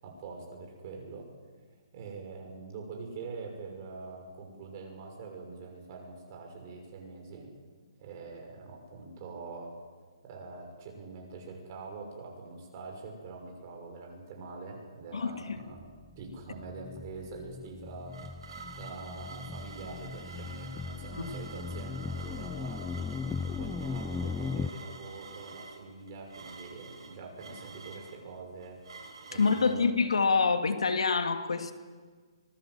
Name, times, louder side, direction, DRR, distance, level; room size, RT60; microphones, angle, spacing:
voice 1, 0.0-1.3 1.9-7.5 8.0-9.7 10.2-15.8 16.2-18.2 18.8-28.8 29.3-30.1, right 4 dB, 30° right, 1 dB, 6.3 m, -44 dB
voice 2, 15.1-15.6 21.2-21.4 29.3-31.7, left 4 dB, 90° left, 7 dB, 2.4 m, -27 dB
sound 1, 15.7-24.7, left 5 dB, 10° left, 0.6 m, -38 dB
sound 2, 17.6-29.8, right 4 dB, 65° right, 6.0 m, -48 dB
25.0 x 19.0 x 7.8 m, 1.5 s
hypercardioid pair, 160°, 3 cm